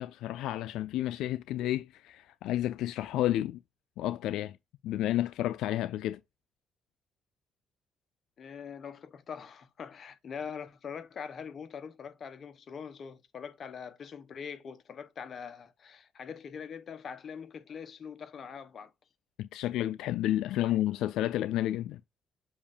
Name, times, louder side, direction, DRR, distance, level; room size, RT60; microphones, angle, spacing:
voice 1, 0.0-3.6 4.0-4.6 4.8-6.2 19.4-22.0, left 13 dB, 90° left, 0.3 m, -31 dB
voice 2, 8.4-18.9 20.6-20.8, left 6 dB, 55° left, 1.0 m, -43 dB
7.3 x 2.6 x 5.0 m
cardioid pair, 90°, 0 cm